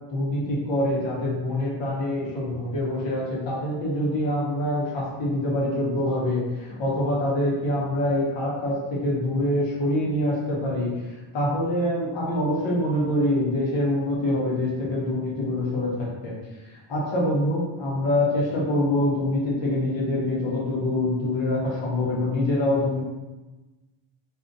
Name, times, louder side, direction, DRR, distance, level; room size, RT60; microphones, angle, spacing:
voice 1, 0.1-10.9 11.3-16.3 16.6-23.0, left 1 dB, 60° left, -4 dB, 1.0 m, -25 dB
2.5 x 2.3 x 2.6 m, 1.1 s
cardioid pair, 110°, 49 cm